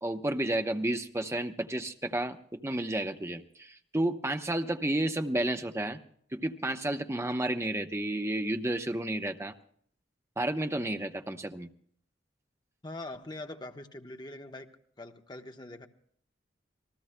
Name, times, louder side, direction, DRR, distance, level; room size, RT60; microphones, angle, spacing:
voice 1, 0.0-6.0 6.3-9.5 10.4-11.7, right 1 dB, 15° right, 7 dB, 0.8 m, -31 dB
voice 2, 12.8-14.7 15.0-15.9, left 2 dB, 25° left, 6 dB, 1.0 m, -43 dB
28.0 x 19.0 x 2.2 m, 0.62 s
head